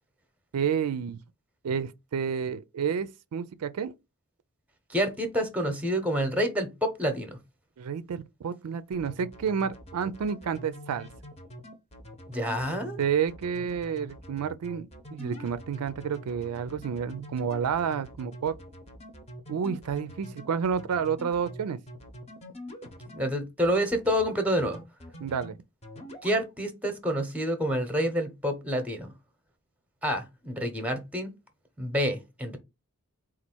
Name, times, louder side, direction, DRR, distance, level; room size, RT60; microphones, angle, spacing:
voice 1, 0.5-1.2 1.6-3.9 7.8-11.1 13.0-18.6 19.5-21.8 25.2-25.6, right 7 dB, 80° right, 0.4 m, -30 dB
voice 2, 4.9-7.4 12.3-13.0 23.1-24.8 26.2-29.1 30.0-31.3 31.8-32.6, equal, 5° right, 0.8 m, -28 dB
sound 1, 8.9-23.3 23.6-24.3 24.6-25.5 25.8-26.4, equal, 30° left, 0.8 m, -45 dB
4.1 x 2.5 x 4.4 m
head